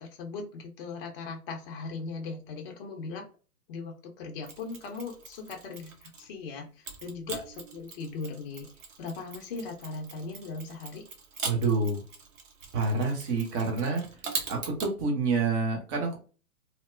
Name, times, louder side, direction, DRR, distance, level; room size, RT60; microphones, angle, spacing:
voice 1, 0.0-3.3 3.7-8.7 9.0-11.0, left 4 dB, 40° left, 2 dB, 0.6 m, -39 dB
Mechanisms, 4.4-6.3 6.8-14.9, right 5 dB, 55° right, 0.9 m, -41 dB
voice 2, 11.4-12.0 12.7-14.0 14.5-16.2, right 3 dB, 20° right, 1 dB, 0.6 m, -27 dB
2.8 x 2.0 x 2.4 m, 0.37 s
figure-of-eight pair, 120°, 45 cm